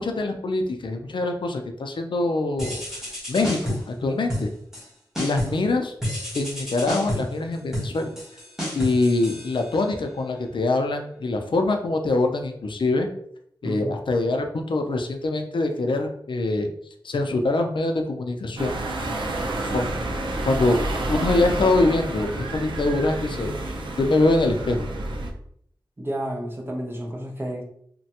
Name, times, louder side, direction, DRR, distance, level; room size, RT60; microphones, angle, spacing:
voice 1, 0.0-2.8 3.3-4.5 5.2-5.9 6.3-8.1 8.7-13.1 13.6-16.7 17.0-18.8 19.6-20.0 20.4-20.8 21.1-23.6 24.0-24.9, left 2 dB, 70° left, 4 dB, 0.4 m, -24 dB
sound 1, 2.6-3.9 4.3-4.9 5.1-5.7 6.0-10.0, equal, 5° right, 1.2 m, -31 dB
sound 2, 18.6-25.3, right 1 dB, 70° right, 0.5 m, -29 dB
voice 2, 26.0-27.6, right 1 dB, 25° right, 0 dB, 0.6 m, -31 dB
3.1 x 2.2 x 2.8 m, 0.68 s
wide cardioid pair, 90°, 9 cm